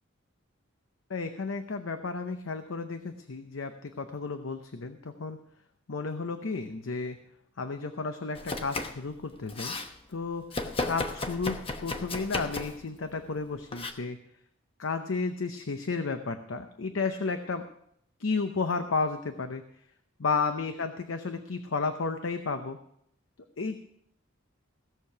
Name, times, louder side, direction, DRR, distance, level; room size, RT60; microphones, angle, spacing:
voice 1, 1.1-5.4 5.9-7.2 7.6-9.8 10.1-14.2 14.8-17.6 18.2-19.6 20.2-22.8 23.6-23.8, left 4 dB, 75° left, 8 dB, 0.8 m, -32 dB
Domestic sounds home sounds, 8.3-9.0 9.3-9.9 10.5-12.8 13.7-13.9, left 2 dB, 30° left, 1.0 m, -34 dB
16.5 x 6.7 x 5.8 m, 0.72 s
head